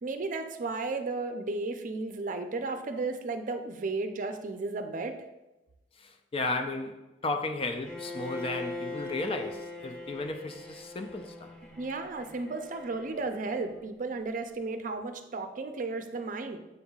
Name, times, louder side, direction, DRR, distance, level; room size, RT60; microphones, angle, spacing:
voice 1, 0.0-5.2 11.8-16.6, right 3 dB, 45° right, 0.5 m, -34 dB
voice 2, 6.0-11.5, left 2 dB, 30° left, 0.4 m, -34 dB
Bowed string instrument, 7.8-13.8, left 2 dB, 5° left, 0.8 m, -42 dB
7.9 x 5.4 x 2.4 m
head